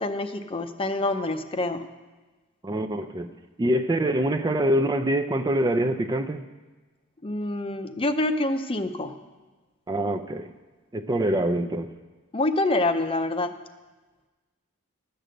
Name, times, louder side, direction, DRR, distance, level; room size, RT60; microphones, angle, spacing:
voice 1, 0.0-1.8 7.2-9.1 12.3-13.5, left 2 dB, 25° left, 9 dB, 0.6 m, -26 dB
voice 2, 2.6-3.3 3.6-6.4 9.9-10.5 10.9-11.9, right 1 dB, 20° right, 8 dB, 0.4 m, -25 dB
12.0 x 6.7 x 7.7 m, 1.2 s
head